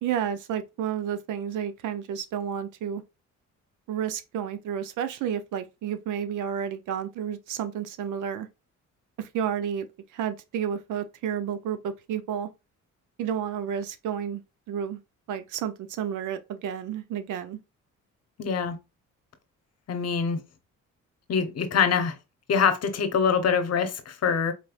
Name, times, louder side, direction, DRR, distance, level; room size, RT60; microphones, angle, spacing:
voice 1, 0.0-3.0 3.9-8.5 9.2-9.9 10.1-12.5 13.2-14.4 14.7-15.0 15.3-17.6, right 9 dB, 80° right, 0.7 m, -31 dB
voice 2, 18.4-18.8 19.9-20.4 21.3-22.2 22.5-24.5, left 6 dB, 55° left, 1.0 m, -24 dB
4.3 x 3.3 x 2.5 m
cardioid pair, 90°, 30 cm